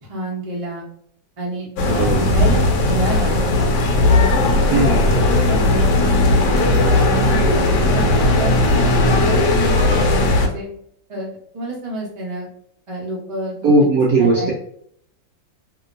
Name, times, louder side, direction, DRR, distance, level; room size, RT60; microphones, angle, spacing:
voice 1, 0.0-0.8 1.4-3.4 4.1-4.9 5.5-6.2 6.5-10.1 10.4-10.7 11.1-12.5 12.9-13.7 14.2-14.5, right 1 dB, 35° right, -4 dB, 0.5 m, -29 dB
sound 1, 1.8-10.5, left 2 dB, 75° left, 1.1 m, -16 dB
voice 2, 1.9-2.2 4.7-5.0 13.6-14.5, right 2 dB, 70° right, -4 dB, 0.8 m, -17 dB
2.9 x 2.6 x 2.5 m, 0.66 s
omnidirectional pair, 2.1 m